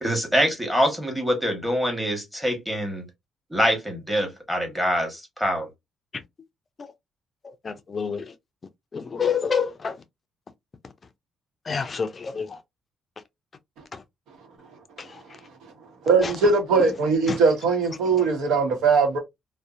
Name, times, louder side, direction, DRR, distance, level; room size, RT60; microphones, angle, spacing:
voice 1, 0.0-3.0 3.5-5.7, equal, 5° right, 1.1 m, -24 dB
voice 2, 7.6-8.2 8.9-9.9 11.7-12.5 17.3-17.4, left 6 dB, 40° left, 0.4 m, -27 dB
voice 3, 16.1-19.2, right 4 dB, 85° right, 0.8 m, -20 dB
2.6 x 2.0 x 2.4 m
cardioid pair, 90°, 0 cm